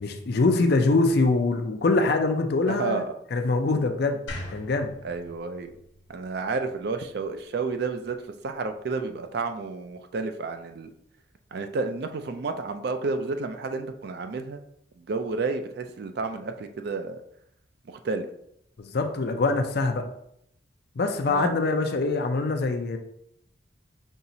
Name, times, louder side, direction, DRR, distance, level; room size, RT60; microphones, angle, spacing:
voice 1, 0.0-3.0 3.3-4.2 4.5-4.9 18.8-20.0 21.0-23.0, left 3 dB, 55° left, 6 dB, 0.5 m, -24 dB
voice 2, 2.7-3.1 5.0-5.7 6.1-8.2 8.4-10.9 11.5-14.6 15.0-17.2 17.9-18.3 21.3-21.6, right 4 dB, 55° right, 7 dB, 0.4 m, -31 dB
sound 1, 4.3-7.4, left 1 dB, 70° left, 1.1 m, -42 dB
5.4 x 2.9 x 2.7 m, 0.75 s
head